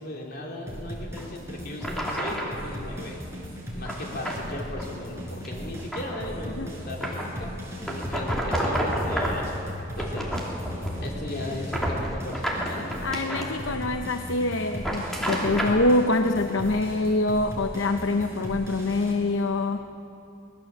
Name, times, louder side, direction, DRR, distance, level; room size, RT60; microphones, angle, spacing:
voice 1, 0.0-3.2 3.7-7.6 7.8-10.4 11.0-12.9 13.3-13.6, left 1 dB, 50° left, -1 dB, 3.6 m, -37 dB
sound 1, 0.7-19.1, equal, 15° right, 5.0 m, -37 dB
sound 2, 1.2-1.3 1.8-2.6 3.9-4.4 4.8-5.0 5.4-6.3 7.0-7.4 7.9-9.5 9.9-11.1 11.4-13.5 14.7-15.8, equal, ahead, 2.9 m, -30 dB
voice 2, 13.0-19.8, left 2 dB, 70° left, 6 dB, 0.8 m, -25 dB
24.0 x 19.0 x 7.3 m, 2.8 s
head